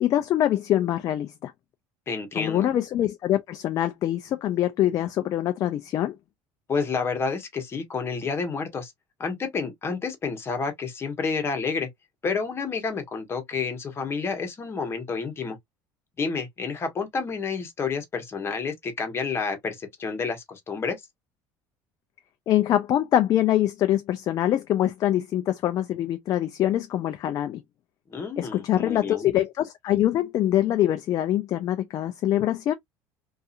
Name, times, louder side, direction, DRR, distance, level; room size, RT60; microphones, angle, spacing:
voice 1, 0.0-1.5 2.4-6.1 22.5-27.6 28.4-32.7, left 12 dB, 45° left, 0.4 m, -24 dB
voice 2, 2.1-2.7 6.7-8.9 9.2-11.9 12.2-15.6 16.2-21.0 28.1-29.3, left 5 dB, 30° left, 1.0 m, -29 dB
2.7 x 2.4 x 2.4 m
cardioid pair, 120°, 9 cm